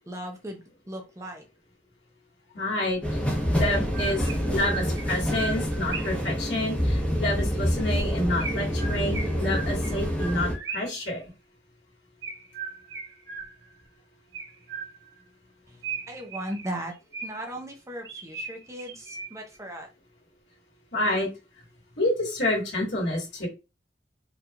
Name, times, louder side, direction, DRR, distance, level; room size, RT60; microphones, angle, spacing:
voice 1, 0.1-1.4 15.7-16.9 17.2-19.9, right 1 dB, 15° right, 2 dB, 0.7 m, -37 dB
voice 2, 2.5-3.0 3.5-11.2 20.9-21.3 22.0-23.5, left 1 dB, 80° left, -3 dB, 2.2 m, -28 dB
sound 1, 3.0-10.5, equal, 5° left, 1.3 m, -27 dB
Chirp tweet, 3.7-6.3 8.4-11.1 12.2-13.8 14.3-15.2 15.8-17.6 18.0-19.6, right 5 dB, 75° right, 1.5 m, -38 dB
4.7 x 3.4 x 2.5 m, 0.27 s
head